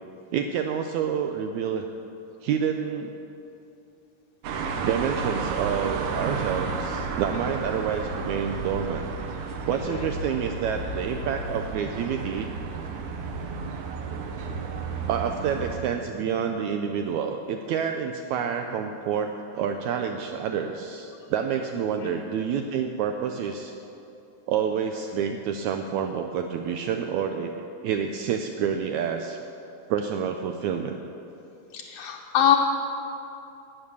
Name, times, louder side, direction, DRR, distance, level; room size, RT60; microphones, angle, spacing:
voice 1, 0.3-1.8 2.4-3.1 4.8-9.0 9.7-12.5 15.1-23.7 24.5-27.5 27.8-29.4 29.9-30.9, right 7 dB, 85° right, 5 dB, 1.6 m, -28 dB
sound 1, 4.4-15.8, right 4 dB, 70° right, 2.2 m, -32 dB
voice 2, 31.7-32.6, left 10 dB, 75° left, 0 dB, 2.1 m, -24 dB
14.5 x 9.0 x 7.0 m, 2.8 s
omnidirectional pair, 4.0 m